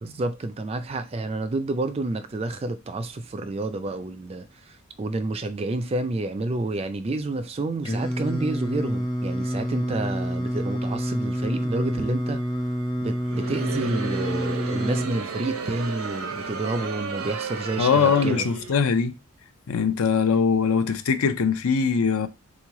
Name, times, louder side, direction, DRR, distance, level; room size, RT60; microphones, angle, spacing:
voice 1, 0.0-12.4 13.0-18.5, right 2 dB, 25° right, 0.3 m, -29 dB
Singing, 7.8-15.1, equal, 20° left, 0.6 m, -28 dB
Crowd, 13.2-18.9, right 4 dB, 75° right, 0.7 m, -33 dB
voice 2, 17.8-19.2 19.7-22.3, left 6 dB, 75° left, 0.5 m, -21 dB
3.8 x 3.1 x 3.6 m
head